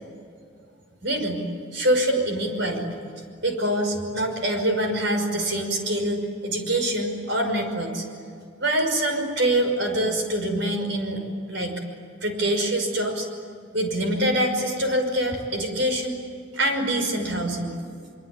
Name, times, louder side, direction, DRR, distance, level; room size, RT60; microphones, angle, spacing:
voice 1, 1.0-1.4 1.7-2.9 3.4-8.0 8.6-11.2 11.5-11.8 12.2-13.3 13.7-16.2 16.5-17.8, right 1 dB, 60° right, 5 dB, 5.7 m, -25 dB
25.0 x 24.5 x 9.8 m, 2.4 s
head